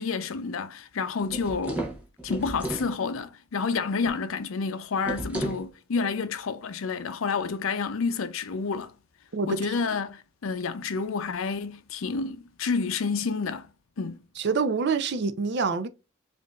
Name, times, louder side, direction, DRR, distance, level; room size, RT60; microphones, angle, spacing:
voice 1, 0.0-1.8 2.2-8.9 9.5-13.7 14.0-14.2, left 4 dB, 75° left, 0.5 m, -29 dB
sound 1, 1.2-2.9 5.0-5.7, right 1 dB, 5° right, 0.8 m, -33 dB
voice 2, 14.4-15.9, right 4 dB, 55° right, 0.5 m, -26 dB
5.0 x 2.5 x 2.3 m
head